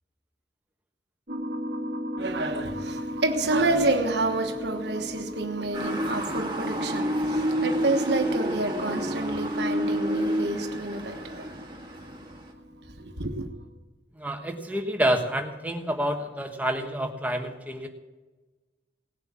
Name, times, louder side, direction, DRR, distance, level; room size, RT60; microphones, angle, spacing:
sound 1, 1.3-13.7, equal, 45° right, 1.5 m, -38 dB
voice 1, 2.2-11.6 13.0-13.5, right 2 dB, 65° right, 4 dB, 1.3 m, -29 dB
Motor vehicle (road) / Siren, 5.7-12.5, equal, 25° right, 1.8 m, -29 dB
voice 2, 14.1-17.9, right 1 dB, 10° right, 4 dB, 1.3 m, -28 dB
18.0 x 7.6 x 7.5 m, 1.2 s
head